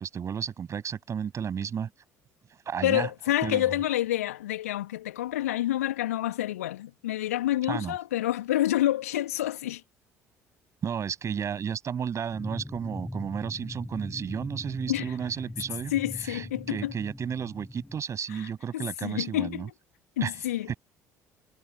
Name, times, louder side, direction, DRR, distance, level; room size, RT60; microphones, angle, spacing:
voice 1, 0.0-1.9 2.7-3.1 3.4-3.6 7.7-7.9 10.8-15.9 16.2-19.7 20.2-20.3 20.7-20.8, right 7 dB, 40° right, 7.1 m, -33 dB
voice 2, 2.8-9.8 14.9-15.2 15.9-16.9 18.3-19.7 20.2-20.7, left 13 dB, 75° left, 2.5 m, -28 dB
sound 1, 12.3-18.0, left 1 dB, 5° left, 2.3 m, -40 dB
figure-of-eight pair, 55°, 8 cm